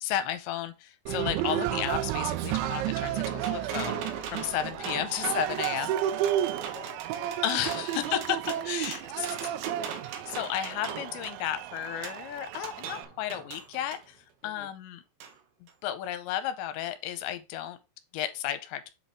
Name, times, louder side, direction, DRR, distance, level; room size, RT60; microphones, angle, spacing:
voice 1, 0.0-4.0 4.3-6.0 7.4-9.3 10.1-14.2 14.4-15.0 15.8-17.8 18.1-18.8, left 11 dB, 90° left, 2.9 m, -33 dB
Cheering, 1.1-13.1, right 12 dB, 90° right, 3.0 m, -32 dB
sound 1, 1.9-14.1 15.2-15.3 15.7-15.8, right 7 dB, 70° right, 2.6 m, -40 dB
voice 2, 4.6-5.4 6.0-7.9 8.3-9.7 14.4-14.7, left 5 dB, 35° left, 1.2 m, -51 dB
7.4 x 4.3 x 4.7 m
omnidirectional pair, 5.2 m